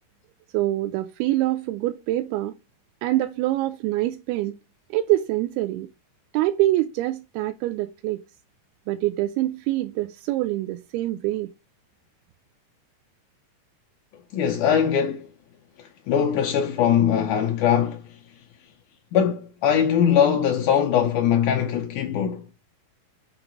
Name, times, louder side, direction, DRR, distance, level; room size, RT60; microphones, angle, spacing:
voice 1, 0.5-2.6 3.0-4.6 4.9-5.9 6.3-8.2 8.9-11.5, right 15 dB, 85° right, 2.5 m, -25 dB
voice 2, 14.3-15.3 15.8-18.2 19.1-22.5, left 8 dB, 80° left, 1.8 m, -21 dB
6.7 x 4.0 x 5.9 m
omnidirectional pair, 4.5 m